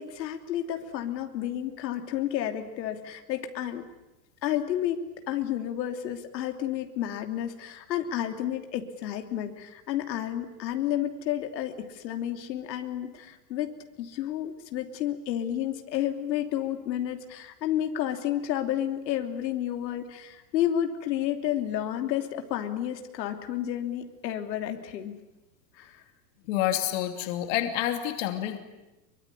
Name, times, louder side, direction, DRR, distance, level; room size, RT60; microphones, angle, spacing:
voice 1, 0.0-3.9 4.4-13.7 14.0-25.2 25.7-26.0, left 11 dB, 85° left, 5 dB, 3.1 m, -31 dB
voice 2, 26.5-28.6, left 12 dB, 45° left, 5 dB, 2.9 m, -28 dB
25.0 x 24.0 x 9.9 m, 0.99 s
supercardioid pair, 180°, 50 cm